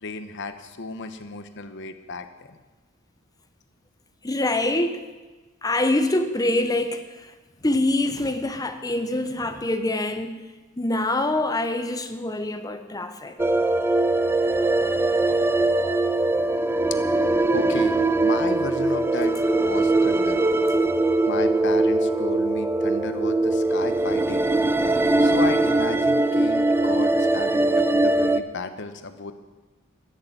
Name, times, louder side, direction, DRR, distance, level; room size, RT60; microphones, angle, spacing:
voice 1, 0.0-2.6 17.5-20.4 21.3-24.4 25.2-29.3, left 3 dB, 60° left, 9 dB, 1.0 m, -34 dB
voice 2, 4.2-5.0 5.6-7.3 7.6-10.3 10.8-13.4, left 1 dB, 20° left, 8 dB, 0.9 m, -25 dB
sound 1, 13.4-28.4, right 2 dB, 10° right, 0.4 m, -21 dB
13.5 x 6.8 x 9.1 m, 1.2 s
head